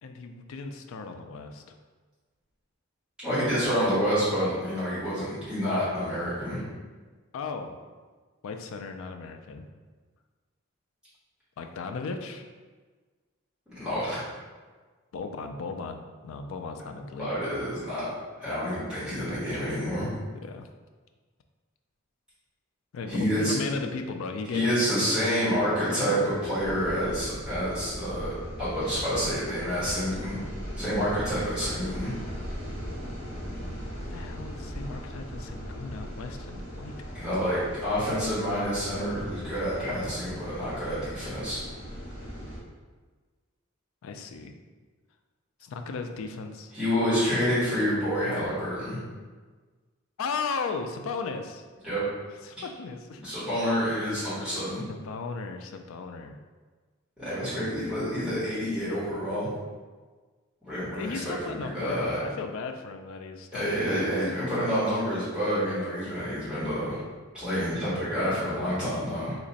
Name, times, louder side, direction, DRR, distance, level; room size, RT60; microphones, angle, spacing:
voice 1, 0.0-1.7 7.3-7.8 8.4-9.7 11.6-12.4 15.1-17.7 20.3-20.7 22.9-24.8 25.1-25.2 34.1-36.9 44.0-44.5 45.6-46.7 50.2-51.6 52.4-53.2 54.9-56.4 61.0-63.9, left 4 dB, 75° left, 6 dB, 0.3 m, -36 dB
voice 2, 3.2-6.6 13.7-14.2 17.2-18.1 18.4-20.1 23.0-23.5 24.5-30.4 30.7-32.1 37.1-41.6 46.7-49.0 51.8-52.0 53.2-54.8 57.2-59.5 60.6-62.2 63.5-67.0 67.3-69.3, equal, 5° right, -13 dB, 1.4 m, -28 dB
sound 1, 26.6-42.6, equal, 50° left, 1.2 m, -39 dB
2.9 x 2.5 x 4.0 m, 1.4 s
head